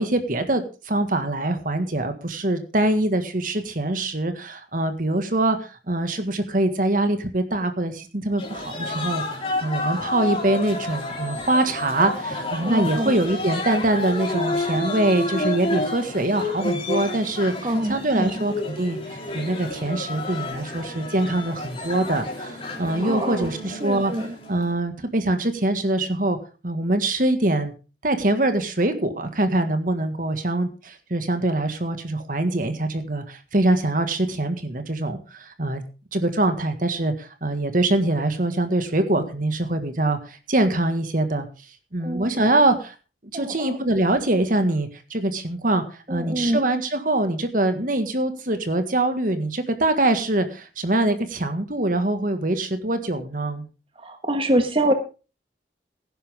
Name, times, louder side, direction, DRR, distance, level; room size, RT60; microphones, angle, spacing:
voice 1, 0.0-19.0 19.3-24.1 24.5-26.4 26.6-27.7 28.0-35.8 36.1-41.5 41.9-42.9 43.3-53.7, right 1 dB, 50° right, 8 dB, 1.8 m, -24 dB
sound 1, 8.4-24.7, left 2 dB, 30° left, 3.8 m, -30 dB
voice 2, 12.6-13.1 17.6-18.4 23.0-23.5 23.8-24.3 42.0-42.3 43.3-43.8 46.1-46.6 54.0-54.9, right 1 dB, 30° right, 6 dB, 1.6 m, -25 dB
17.0 x 10.5 x 3.6 m, 0.32 s
head